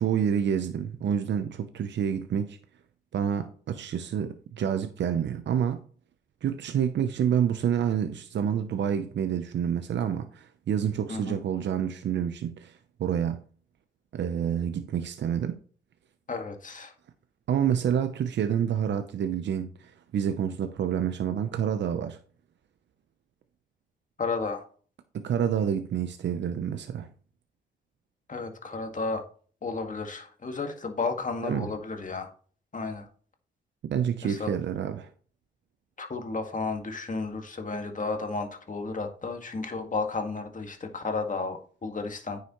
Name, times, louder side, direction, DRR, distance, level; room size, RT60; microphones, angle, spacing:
voice 1, 0.0-2.6 3.1-5.8 6.4-13.4 14.1-15.6 17.5-22.2 25.1-27.1 31.4-31.7 33.8-35.1, right 8 dB, 75° right, 0.7 m, -28 dB
voice 2, 11.1-11.4 16.3-16.9 24.2-24.7 28.3-29.2 29.6-32.3 32.7-33.1 34.2-34.5 36.0-42.4, left 4 dB, 45° left, 1.9 m, -33 dB
9.4 x 6.8 x 3.1 m
cardioid pair, 55°, 19 cm